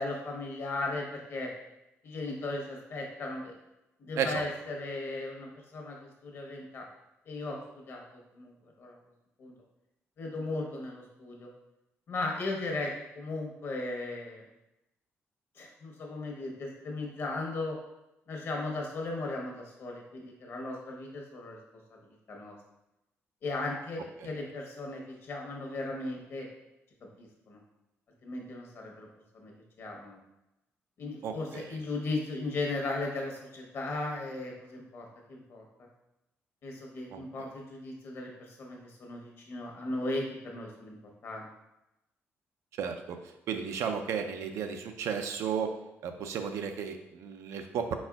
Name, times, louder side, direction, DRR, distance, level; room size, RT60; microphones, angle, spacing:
voice 1, 0.0-1.5 2.0-3.6 4.0-6.9 7.3-7.6 7.9-8.0 8.3-9.0 9.4-9.5 10.2-11.5 12.1-14.4 15.6-17.8 18.3-21.6 21.9-22.0 22.3-22.6 23.4-26.5 27.2-27.6 28.2-29.1 29.3-30.2 31.0-35.6 36.6-41.0 41.2-41.5, left 2 dB, 55° left, 0 dB, 1.0 m, -37 dB
voice 2, 31.2-31.8 37.1-37.2 42.8-43.2 43.5-45.7 46.0-48.0, right 7 dB, 90° right, 6 dB, 0.5 m, -33 dB
4.3 x 4.2 x 2.4 m, 0.91 s
cardioid pair, 135°, 5 cm